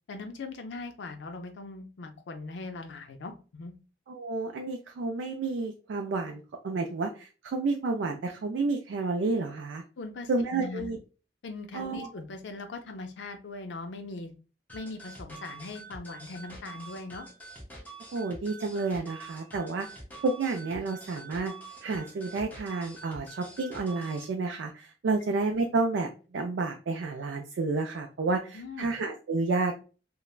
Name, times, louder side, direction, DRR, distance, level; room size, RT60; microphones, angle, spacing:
voice 1, 0.1-3.7 10.0-10.9 11.4-14.3 14.7-17.3 28.5-28.9, left 3 dB, 85° left, 6 dB, 0.5 m, -40 dB
voice 2, 4.1-9.8 10.3-11.0 11.7-12.1 18.1-19.9 20.2-21.5 21.8-29.8, right 3 dB, 80° right, 3 dB, 0.3 m, -30 dB
sound 1, 14.7-24.3, right 2 dB, 10° left, 0.6 m, -46 dB
3.2 x 2.0 x 2.3 m, 0.35 s
head